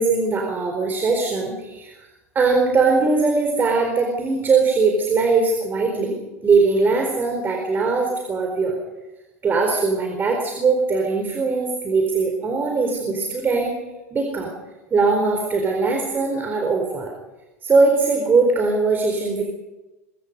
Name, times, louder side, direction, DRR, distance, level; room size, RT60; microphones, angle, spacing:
voice 1, 0.0-2.1 2.3-6.2 6.4-8.8 9.4-13.8 14.1-14.5 14.9-17.1 17.6-19.4, right 4 dB, 25° right, 2 dB, 4.2 m, -20 dB
24.5 x 23.5 x 5.4 m, 1.1 s
figure-of-eight pair, 85°, 8 cm